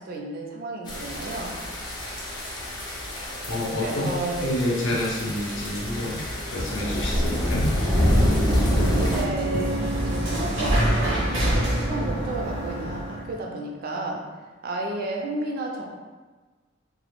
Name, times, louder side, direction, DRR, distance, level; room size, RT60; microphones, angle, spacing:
voice 1, 0.0-1.6 3.8-4.5 9.0-9.7 10.0-14.2 14.6-15.9, right 2 dB, 50° right, -1 dB, 0.4 m, -32 dB
sound 1, 0.9-9.2, left 1 dB, 20° left, 0.4 m, -26 dB
voice 2, 3.4-4.1 4.4-6.2 6.5-7.7, left 1 dB, 70° left, -4 dB, 0.6 m, -28 dB
sound 2, 7.8-13.3, right 1 dB, 85° right, 0.7 m, -26 dB
2.1 x 2.0 x 2.9 m, 1.3 s
head